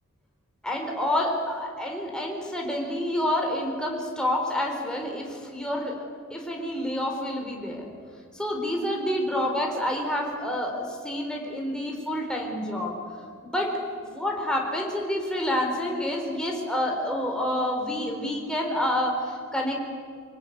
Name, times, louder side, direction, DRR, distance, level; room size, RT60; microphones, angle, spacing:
voice 1, 0.6-5.9 6.3-7.9 8.3-13.0 13.4-19.8, left 1 dB, 5° left, 0 dB, 4.3 m, -28 dB
25.0 x 19.5 x 9.6 m, 2.1 s
head